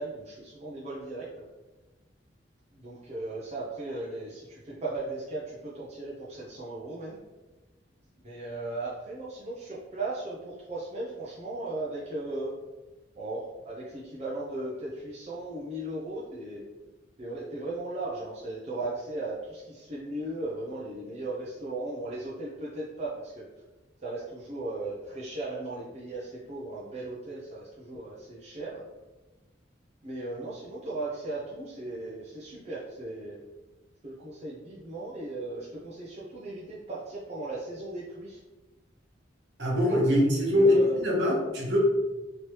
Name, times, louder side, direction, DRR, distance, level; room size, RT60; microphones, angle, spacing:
voice 1, 0.0-1.4 2.7-7.2 8.2-12.5 13.2-16.7 17.2-23.5 24.0-28.8 30.0-33.4 34.0-38.4 40.4-41.0, right 2 dB, 35° right, -6 dB, 0.5 m, -37 dB
voice 2, 39.6-41.8, left 1 dB, 65° right, -3 dB, 1.1 m, -23 dB
3.2 x 2.9 x 3.0 m, 1.1 s
head